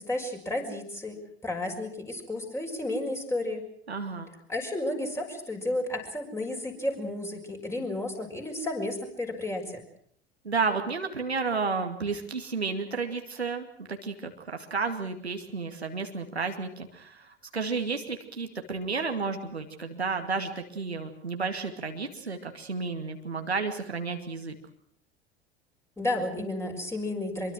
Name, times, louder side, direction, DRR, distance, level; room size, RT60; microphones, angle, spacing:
voice 1, 0.0-3.6 4.5-9.8 26.0-27.5, left 1 dB, 10° left, 2 dB, 6.4 m, -32 dB
voice 2, 3.9-4.3 10.4-24.6, right 4 dB, 85° right, 5 dB, 2.4 m, -32 dB
25.5 x 23.0 x 6.3 m, 0.63 s
figure-of-eight pair, 75°, 31 cm